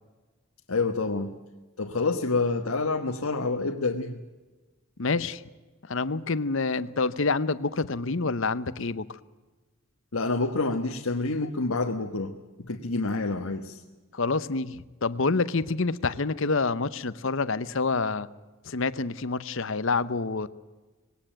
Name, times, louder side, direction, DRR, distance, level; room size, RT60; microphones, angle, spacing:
voice 1, 0.7-1.3 1.8-4.2 10.1-12.3 12.7-13.8, left 3 dB, 80° left, 4 dB, 1.3 m, -27 dB
voice 2, 5.0-5.4 5.9-9.2 14.1-18.3 18.6-20.5, left 3 dB, 60° left, 16 dB, 0.8 m, -27 dB
20.0 x 17.5 x 9.0 m, 1.3 s
head